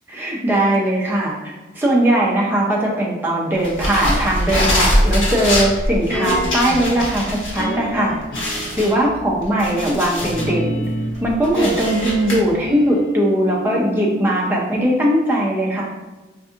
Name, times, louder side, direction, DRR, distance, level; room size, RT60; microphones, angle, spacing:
voice 1, 0.1-8.1 8.6-10.8 11.2-15.8, right 1 dB, 10° right, -4 dB, 0.5 m, -19 dB
sound 1, 3.6-7.6 7.9-8.0 8.3-10.5 11.0-12.3, left 1 dB, 80° left, 1.2 m, -22 dB
sound 2, 6.1-6.9 7.5-9.2 10.2-14.4 14.7-14.8, right 1 dB, 50° left, 0.6 m, -28 dB
3.9 x 2.6 x 2.5 m, 1.1 s
head